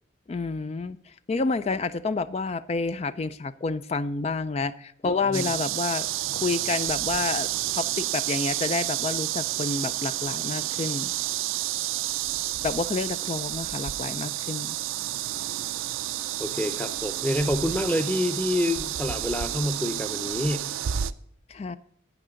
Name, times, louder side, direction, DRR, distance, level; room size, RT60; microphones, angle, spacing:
voice 1, 0.3-6.1 6.3-11.1 12.6-14.8 21.5-21.8, left 4 dB, 30° left, 14 dB, 0.3 m, -29 dB
voice 2, 5.0-5.5 16.4-20.7, left 1 dB, 10° left, 9 dB, 0.8 m, -27 dB
sound 1, 5.3-21.1, right 13 dB, 85° right, 0.4 m, -30 dB
12.0 x 9.1 x 3.8 m, 0.67 s
head